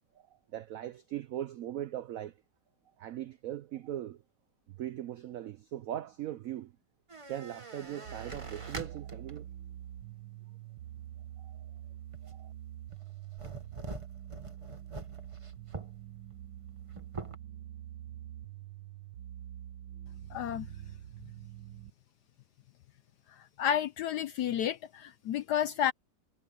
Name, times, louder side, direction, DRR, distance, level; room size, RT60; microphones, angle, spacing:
voice 1, 0.2-2.4 3.0-4.2 4.7-6.7 7.3-9.5 11.4-11.7 12.2-12.5, right 12 dB, 70° right, 0.8 m, -40 dB
sound 1, 7.1-9.5 10.0-10.1 12.1-12.5 12.9-16.0 16.4-16.5 16.7-17.4, right 3 dB, 20° right, 1.1 m, -44 dB
Melodic Ambience Loop, 8.0-21.9, right 11 dB, 90° right, 1.7 m, -46 dB
voice 2, 20.3-20.7 23.6-25.9, left 9 dB, 70° left, 1.1 m, -31 dB
omnidirectional pair, 2.0 m